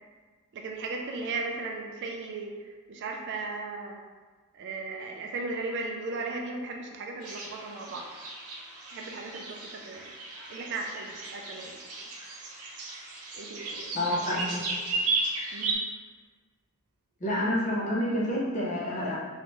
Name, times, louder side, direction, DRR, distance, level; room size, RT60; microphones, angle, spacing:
voice 1, 0.5-4.0 4.5-8.1 8.9-10.1 10.5-12.0 12.4-12.6 13.3-14.5 14.8-15.1 15.5-15.8, right 3 dB, 50° right, 2 dB, 0.4 m, -37 dB
sound 1, 7.2-15.7, right 3 dB, 80° right, 0.8 m, -35 dB
voice 2, 13.9-14.6 17.2-19.2, left 1 dB, 35° left, -6 dB, 0.6 m, -28 dB
3.2 x 2.9 x 3.0 m, 1.4 s
head